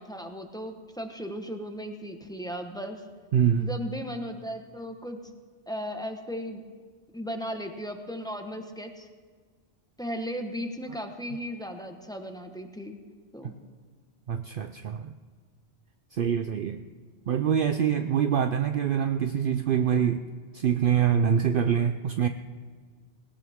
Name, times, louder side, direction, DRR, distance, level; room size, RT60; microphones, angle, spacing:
voice 1, 0.0-3.0 3.6-5.2 5.7-6.6 7.1-9.1 10.0-13.0 13.3-13.6, equal, 5° left, 4 dB, 1.1 m, -36 dB
voice 2, 3.3-3.7 14.3-15.1 16.1-16.9 17.3-20.2 20.5-22.3, right 8 dB, 60° right, 8 dB, 0.7 m, -25 dB
20.0 x 18.5 x 3.6 m, 1.6 s
omnidirectional pair, 1.1 m